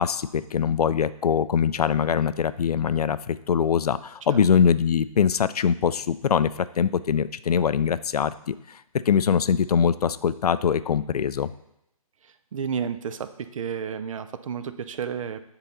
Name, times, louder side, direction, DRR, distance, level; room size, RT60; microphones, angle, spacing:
voice 1, 0.0-8.8 9.1-11.5, left 7 dB, 85° left, 15 dB, 0.4 m, -23 dB
voice 2, 12.2-15.4, right 7 dB, 60° right, 11 dB, 0.6 m, -32 dB
8.0 x 3.9 x 4.1 m, 0.81 s
hypercardioid pair, 150°, 19 cm